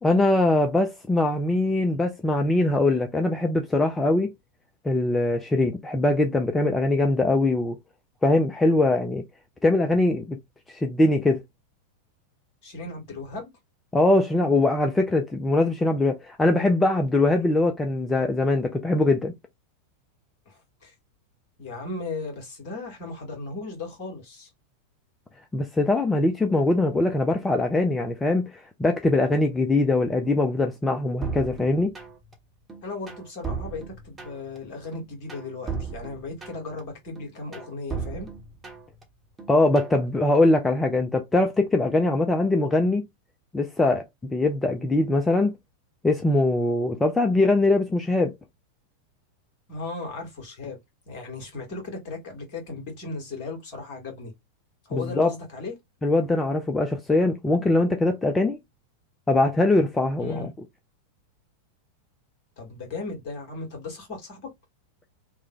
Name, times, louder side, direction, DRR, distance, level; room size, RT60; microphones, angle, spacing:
voice 1, 0.0-4.3 4.8-7.8 8.2-9.2 9.6-10.4 10.7-11.4 13.9-19.3 25.5-31.9 39.5-43.0 43.5-44.0 44.3-45.5 46.0-48.3 54.9-55.3 56.0-58.6 59.3-60.5, left 2 dB, 10° left, 0.4 m, -22 dB
voice 2, 12.6-13.5 20.4-20.9 21.6-24.5 32.8-38.3 49.7-50.8 51.1-54.3 54.8-55.8 60.2-60.5 62.6-64.5, left 3 dB, 45° left, 1.7 m, -36 dB
sound 1, 31.2-32.3 32.7-34.6 34.9-36.8 37.2-39.0 39.4-40.0, right 5 dB, 15° right, 1.1 m, -35 dB
3.1 x 2.2 x 3.7 m
figure-of-eight pair, 90°, 0 cm